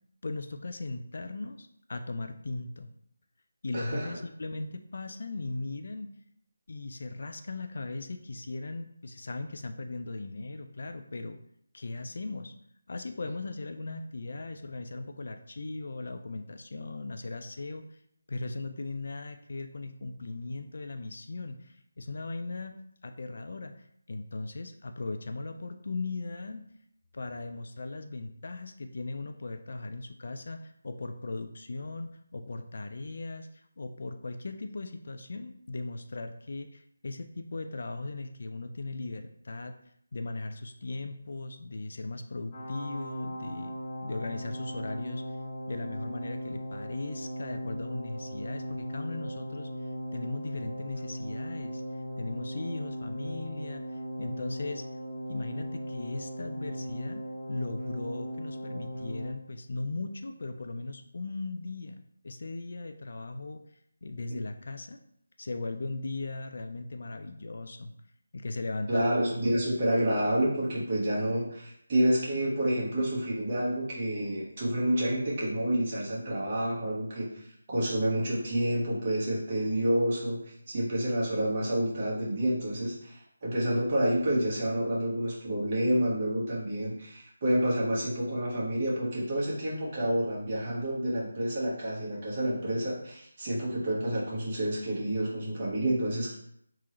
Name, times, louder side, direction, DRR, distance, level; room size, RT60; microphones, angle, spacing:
voice 1, 0.2-2.9 3.6-6.1 6.7-11.4 11.7-12.5 12.9-18.0 18.3-26.7 27.1-39.8 40.1-43.8 44.0-45.2 45.7-49.7 50.1-51.8 52.2-54.8 55.3-57.2 57.5-62.0 62.2-63.6 64.0-65.0 65.4-67.9 68.3-69.0, left 3 dB, 55° left, 7 dB, 0.3 m, -38 dB
voice 2, 3.7-4.2 64.3-64.4 68.9-80.4 80.7-96.3, right 1 dB, 35° right, -6 dB, 1.4 m, -29 dB
sound 1, 42.5-59.3, equal, 30° left, 0.9 m, -38 dB
3.5 x 3.0 x 3.0 m, 0.71 s
figure-of-eight pair, 160°, 0 cm